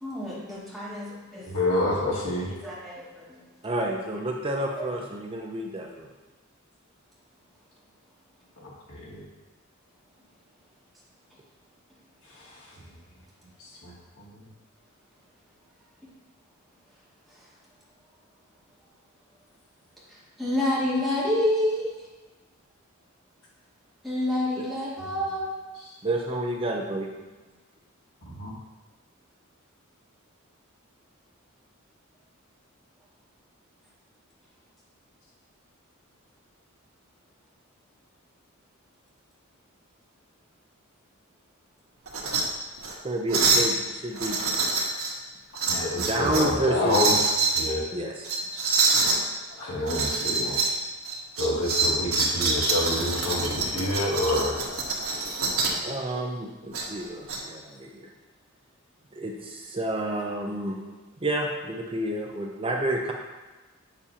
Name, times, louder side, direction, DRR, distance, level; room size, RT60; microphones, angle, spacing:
voice 1, 0.0-1.5 2.6-3.4 4.8-4.9 20.1-21.9 24.0-25.5, left 1 dB, ahead, -9 dB, 2.4 m, -28 dB
voice 2, 1.5-2.5 8.9-9.2 12.4-12.5 13.8-13.9 28.3-28.5 45.7-47.8 49.6-50.7 51.4-54.6, left 1 dB, 80° left, -7 dB, 2.7 m, -27 dB
voice 3, 3.6-6.1 24.6-24.7 26.0-27.1 43.0-44.4 45.9-47.0 47.9-48.3 55.8-58.1 59.1-60.8 61.2-63.1, right 1 dB, 25° right, 1 dB, 0.6 m, -30 dB
sound 1, 42.1-42.4 42.8-42.9 43.3-43.7 44.2-45.1 45.6-46.5 46.9-47.6 48.2-49.2 49.9-50.8 51.1-55.8 56.7-57.4, right 3 dB, 85° right, 1.5 m, -25 dB
8.3 x 7.0 x 2.9 m, 1.2 s
head